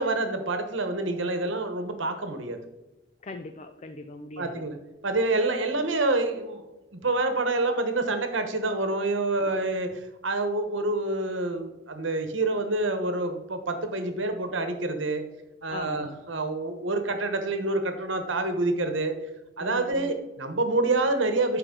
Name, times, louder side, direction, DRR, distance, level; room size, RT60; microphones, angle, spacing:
voice 1, 0.0-2.6 4.4-4.8 5.0-6.6 6.9-9.9 10.2-15.2 15.6-19.1 19.6-21.6, right 2 dB, 70° right, 7 dB, 1.2 m, -27 dB
voice 2, 3.2-4.7 9.5-9.6 15.7-16.2 19.6-20.2, left 2 dB, 35° left, 7 dB, 0.5 m, -40 dB
10.5 x 4.5 x 3.9 m, 1.0 s
head